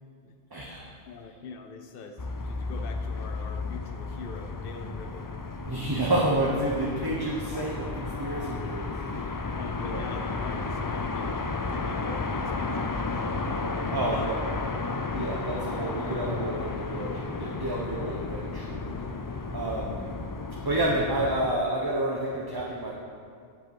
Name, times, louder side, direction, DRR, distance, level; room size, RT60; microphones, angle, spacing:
voice 1, 0.5-0.9 5.7-9.4 9.8-10.1 13.9-14.5 15.1-20.1 20.6-22.9, right 1 dB, 25° right, -3 dB, 1.0 m, -30 dB
voice 2, 1.0-5.3 7.5-8.2 9.5-13.5 14.1-14.3, left 4 dB, 65° left, 5 dB, 0.9 m, -44 dB
sound 1, 2.2-21.5, left 3 dB, 35° left, 0.3 m, -33 dB
10.5 x 8.2 x 6.0 m, 2.3 s
omnidirectional pair, 1.0 m